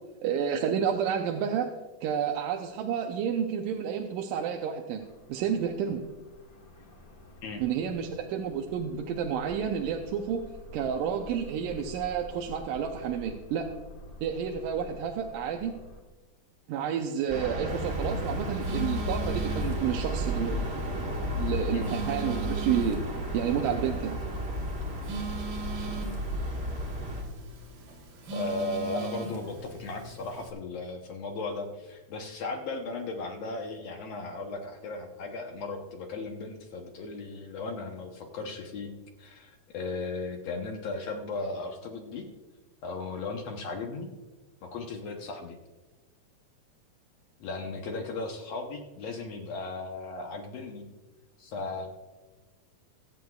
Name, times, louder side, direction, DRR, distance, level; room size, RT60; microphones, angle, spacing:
voice 1, 0.2-1.7 2.0-5.0 5.3-6.0 7.6-10.5 10.7-13.7 14.2-15.7 16.7-20.7 21.4-23.0 23.3-24.2, right 8 dB, 80° right, 3 dB, 2.3 m, -30 dB
sound 1, 5.0-16.0, left 1 dB, 40° left, 1.3 m, -49 dB
sound 2, 17.3-27.2, equal, 45° right, 0.8 m, -32 dB
Telephone, 17.7-30.5, right 3 dB, 65° right, 2.8 m, -41 dB
voice 2, 28.3-42.3 42.8-44.1 44.6-45.6 47.4-50.9 51.4-51.9, left 3 dB, 65° left, 2 dB, 1.7 m, -36 dB
24.5 x 8.4 x 2.3 m, 1.2 s
omnidirectional pair, 3.8 m